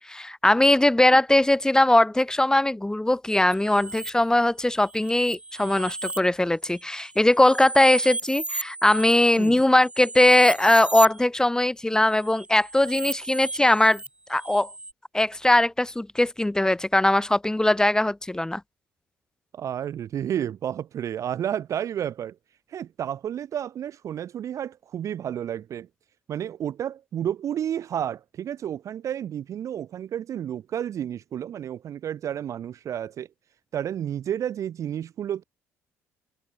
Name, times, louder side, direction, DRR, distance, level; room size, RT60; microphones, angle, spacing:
voice 1, 0.0-14.0 14.3-14.7 15.1-18.6, left 1 dB, 10° left, 0.7 m, -20 dB
sound 1, 3.5-4.1 4.8-6.2 6.7-11.2 12.1-14.9, right 2 dB, 15° right, 1.0 m, -35 dB
voice 2, 19.5-22.4 22.7-25.9 26.3-33.3 33.7-35.4, right 10 dB, 45° right, 0.3 m, -31 dB
figure-of-eight pair, 45°, 7 cm